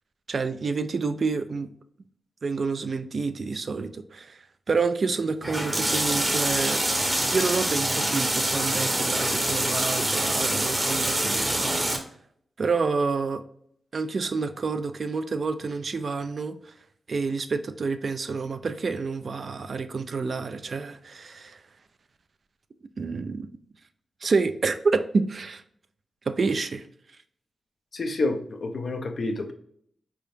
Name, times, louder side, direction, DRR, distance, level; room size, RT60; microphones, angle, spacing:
voice 1, 0.3-1.7 2.4-6.8 7.3-11.8 12.6-13.4 13.9-16.7 17.1-21.6 23.0-23.5 24.2-25.6 26.3-26.9, right 4 dB, 45° right, 10 dB, 0.3 m, -28 dB
sound 1, 5.4-12.0, right 1 dB, 15° right, 0.8 m, -25 dB
voice 2, 27.9-29.5, left 2 dB, 50° left, 5 dB, 0.6 m, -28 dB
4.7 x 3.5 x 2.7 m, 0.66 s
wide cardioid pair, 145°, 0 cm